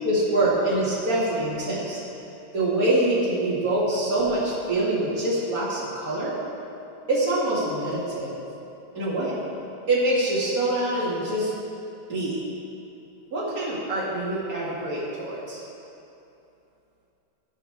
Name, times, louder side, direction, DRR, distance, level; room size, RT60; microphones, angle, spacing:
voice 1, 0.0-2.0 2.5-6.4 7.1-8.4 8.9-9.4 9.9-11.5 12.1-12.3 13.3-15.6, right 1 dB, 30° right, -8 dB, 2.0 m, -25 dB
15.5 x 5.6 x 3.5 m, 2.8 s
omnidirectional pair, 4.0 m